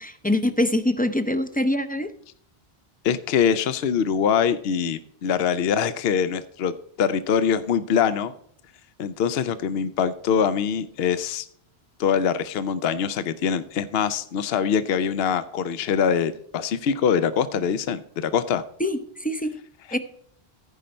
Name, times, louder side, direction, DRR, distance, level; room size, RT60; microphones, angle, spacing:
voice 1, 0.0-2.1 18.8-19.5 19.9-20.0, left 1 dB, 10° left, 10 dB, 0.4 m, -24 dB
voice 2, 3.0-8.3 9.0-11.5 12.0-18.6, left 7 dB, 75° left, 13 dB, 0.8 m, -23 dB
14.5 x 5.3 x 4.3 m, 0.67 s
omnidirectional pair, 1.0 m